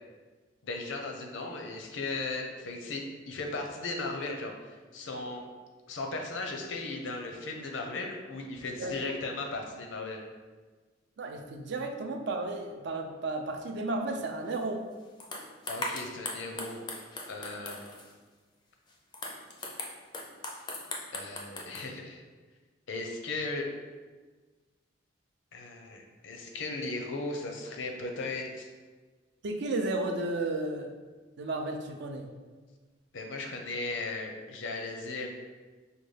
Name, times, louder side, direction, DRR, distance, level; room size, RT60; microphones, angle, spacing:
voice 1, 0.6-5.5 5.9-10.2 15.7-16.8 17.3-17.9 21.1-22.2 22.9-23.7 25.5-28.7 33.1-35.3, left 3 dB, 80° left, 2 dB, 0.6 m, -37 dB
voice 2, 11.2-14.8 29.4-30.9 31.4-32.3, right 2 dB, 65° right, 3 dB, 0.4 m, -33 dB
sound 1, 14.5-14.6 15.2-18.1 18.9-21.9, left 2 dB, 25° left, 0.4 m, -39 dB
5.1 x 2.2 x 3.2 m, 1.4 s
head